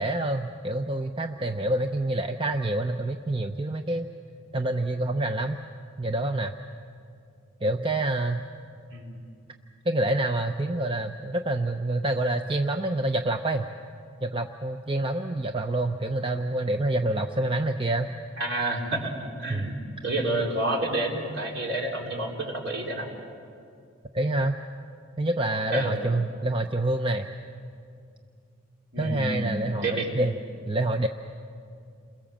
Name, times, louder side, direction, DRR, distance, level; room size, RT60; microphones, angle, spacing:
voice 1, 0.0-4.1 4.5-5.6 6.0-6.5 7.6-8.4 9.9-13.6 14.2-18.1 19.5-19.7 24.1-24.6 25.2-27.3 29.0-30.3 30.7-31.1, right 2 dB, 25° right, 6 dB, 0.7 m, -27 dB
voice 2, 8.9-9.2 18.4-19.8 20.0-23.1 25.7-26.0 28.9-29.5 29.8-30.1, right 2 dB, 55° right, 0 dB, 4.0 m, -29 dB
29.0 x 22.0 x 7.3 m, 2.4 s
head